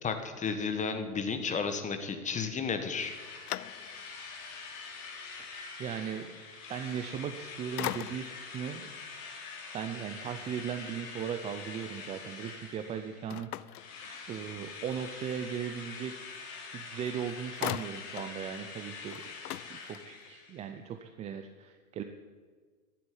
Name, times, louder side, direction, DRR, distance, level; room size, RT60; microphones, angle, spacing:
voice 1, 0.0-3.1, left 5 dB, 15° left, 7 dB, 1.3 m, -33 dB
sound 1, 2.8-4.2 4.8-4.9 7.1-7.4 7.8-8.5 13.3-14.6 16.7-16.8 17.1-18.4 18.7-18.8 19.1-20.3, left 14 dB, 85° left, 0.5 m, -40 dB
Drill, 3.0-13.4 13.8-20.7, left 5 dB, 40° left, 3.7 m, -45 dB
voice 2, 5.8-6.3 6.7-8.9 9.7-13.7 14.3-19.2 19.7-22.0, right 8 dB, 15° right, 7 dB, 0.5 m, -38 dB
11.5 x 9.1 x 9.9 m, 1.5 s
hypercardioid pair, 120°, 44 cm